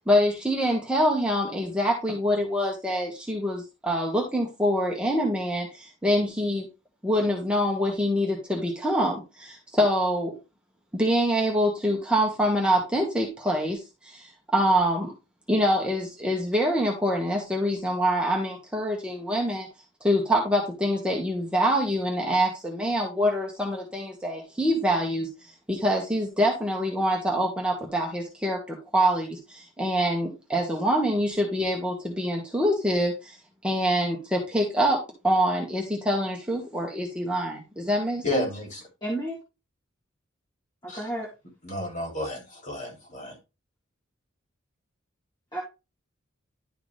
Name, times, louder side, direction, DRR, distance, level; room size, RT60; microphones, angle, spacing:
voice 1, 0.1-6.7 7.0-10.4 10.9-15.1 15.5-19.7 20.0-25.3 25.7-33.4 33.6-38.4, equal, 5° right, -1 dB, 1.4 m, -25 dB
voice 2, 38.2-38.8 40.9-41.1 41.6-43.4, left 1 dB, 40° left, 1 dB, 3.0 m, -31 dB
voice 3, 39.0-39.4 40.8-41.3 45.5-45.6, right 1 dB, 20° left, -4 dB, 1.9 m, -31 dB
11.0 x 4.7 x 3.3 m, 0.27 s
head